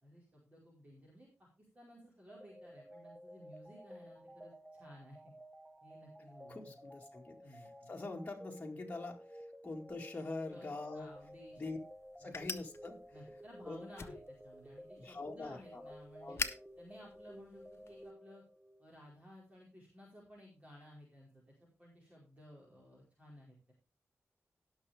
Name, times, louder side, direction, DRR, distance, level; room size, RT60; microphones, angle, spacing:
voice 1, 0.0-5.3 5.8-6.7 7.4-7.9 10.5-11.6 12.2-12.4 13.1-16.4 16.8-18.4 18.8-21.4 21.8-23.7, equal, 25° right, -4 dB, 4.7 m, -57 dB
sound 1, 2.3-18.9, equal, 10° right, 0.9 m, -54 dB
voice 2, 6.5-11.1 11.6-11.8 12.2-13.0 13.6-14.2 15.0-15.8 16.2-16.5, left 3 dB, 25° left, 0 dB, 2.2 m, -44 dB
sound 2, 11.0-18.1, left 4 dB, 50° left, 0.9 m, -47 dB
17.5 x 6.4 x 3.5 m, 0.30 s
wide cardioid pair, 115°, 5 cm